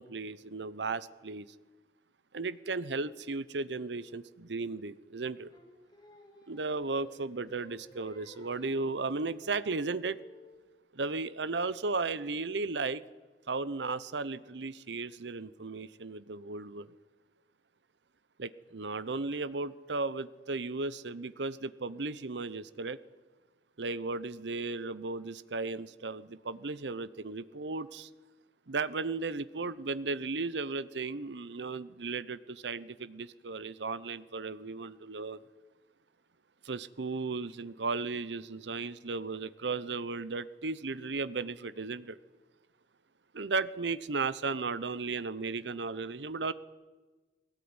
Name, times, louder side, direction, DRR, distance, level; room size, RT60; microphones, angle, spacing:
voice 1, 0.0-1.5 2.3-5.5 6.5-10.2 10.9-13.0 13.5-16.9 18.4-23.0 23.8-28.1 28.7-35.4 36.6-42.2 43.3-46.5, right 3 dB, 75° right, 16 dB, 0.9 m, -35 dB
Singing, 5.5-10.7, equal, 25° left, 4.1 m, -55 dB
20.5 x 17.5 x 9.7 m, 1.3 s
head